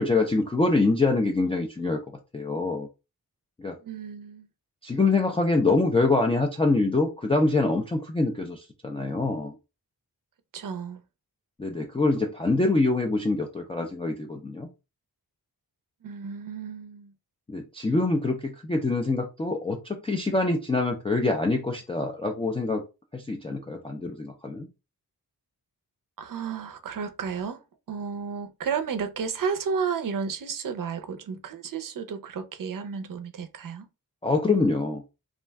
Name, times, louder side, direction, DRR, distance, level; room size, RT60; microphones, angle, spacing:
voice 1, 0.0-2.0 2.3-2.9 3.6-3.8 4.8-9.5 11.6-14.7 17.5-22.8 23.1-24.7 34.2-35.0, left 3 dB, 15° left, 0.3 m, -25 dB
voice 2, 3.8-4.5 10.5-11.0 16.0-17.1 26.2-27.6 27.9-33.9, right 6 dB, 60° right, 0.5 m, -32 dB
2.4 x 2.1 x 3.3 m
wide cardioid pair, 110°, 38 cm